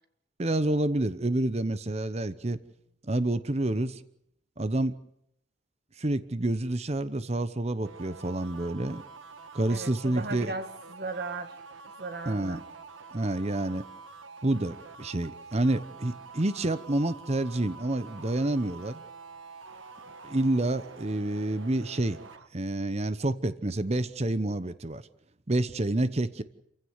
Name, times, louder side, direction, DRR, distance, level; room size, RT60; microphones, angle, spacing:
voice 1, 0.4-2.6 3.0-4.0 4.6-4.9 6.0-9.0 9.5-10.5 12.3-12.6 13.1-13.8 14.4-19.0 20.2-22.2 22.5-25.0 25.5-26.4, right 1 dB, 35° right, 0.9 m, -28 dB
sound 1, 7.8-22.5, right 4 dB, 80° right, 1.7 m, -47 dB
voice 2, 9.7-11.6 12.0-12.6, right 3 dB, 55° right, 2.0 m, -37 dB
27.5 x 16.0 x 9.5 m
head